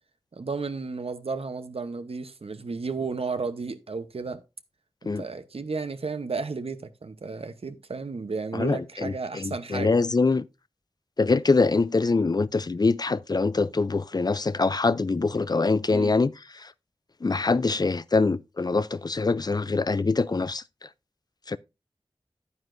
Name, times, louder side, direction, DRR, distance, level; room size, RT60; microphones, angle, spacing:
voice 1, 0.3-4.4 5.0-9.9 15.9-16.1, right 4 dB, 80° right, 0.8 m, -33 dB
voice 2, 8.5-10.4 11.2-16.3 16.6-16.7 17.2-20.6 21.5-21.6, left 3 dB, 40° left, 0.4 m, -24 dB
9.7 x 9.5 x 2.5 m
wide cardioid pair, 60°, 10 cm